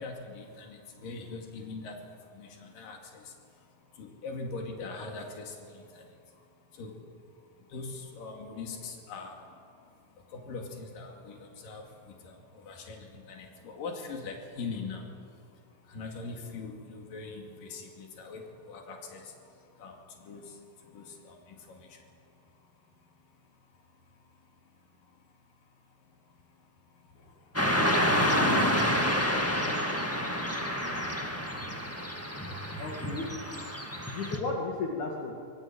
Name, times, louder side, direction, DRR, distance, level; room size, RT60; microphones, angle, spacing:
voice 1, 0.0-31.3, left 3 dB, 80° left, 1 dB, 4.1 m, -44 dB
Car passing by / Traffic noise roadway noise, 27.5-34.4, equal, 10° left, 0.8 m, -28 dB
voice 2, 32.8-33.3 34.1-35.4, left 3 dB, 65° left, -1 dB, 3.6 m, -34 dB
25.0 x 22.0 x 8.7 m, 2.4 s
omnidirectional pair, 3.8 m